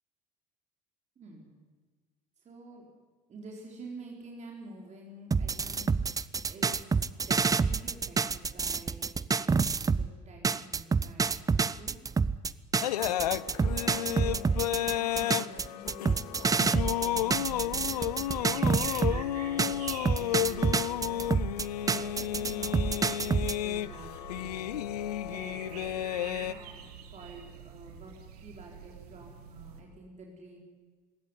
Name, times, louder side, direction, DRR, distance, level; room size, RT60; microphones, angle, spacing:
voice 1, 1.2-1.5 2.4-2.9 3.3-5.9 6.5-9.6 9.9-11.9 12.9-21.2 21.8-24.6 25.3-28.1 28.4-30.6, right 2 dB, 35° right, -1 dB, 4.2 m, -49 dB
sound 1, 5.3-10.1 10.4-19.2 19.6-23.6, right 5 dB, 15° right, 0.6 m, -28 dB
sound 2, 12.8-26.5, left 13 dB, 70° left, 0.6 m, -32 dB
sound 3, 17.0-29.8, right 7 dB, 70° right, 2.1 m, -47 dB
21.0 x 17.0 x 9.9 m, 1.4 s
figure-of-eight pair, 60°, 21 cm